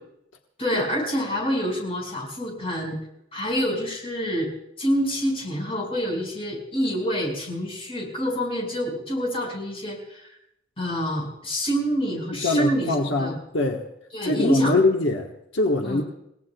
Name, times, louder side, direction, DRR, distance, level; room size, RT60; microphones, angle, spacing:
voice 1, 0.6-3.0 3.3-4.5 4.8-10.3 10.8-13.4 14.1-14.7 15.8-16.0, equal, 30° left, -1 dB, 5.4 m, -27 dB
voice 2, 12.3-13.9 14.2-16.0, left 2 dB, 85° left, 1 dB, 1.3 m, -23 dB
30.0 x 17.5 x 2.3 m, 0.79 s
head